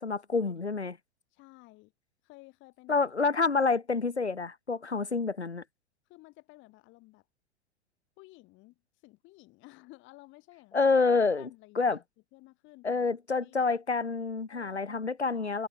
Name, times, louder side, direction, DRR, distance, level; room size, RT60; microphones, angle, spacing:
voice 1, 0.0-0.9 2.9-5.6 10.7-11.5 11.7-12.0 12.8-15.7, left 4 dB, 85° left, 1.2 m, -28 dB
voice 2, 1.3-1.9 2.2-2.9 6.1-7.2 8.2-11.0 11.3-12.0 12.3-13.1 13.4-13.7 14.5-15.7, left 21 dB, 35° left, 3.9 m, -55 dB
figure-of-eight pair, 95°, 32 cm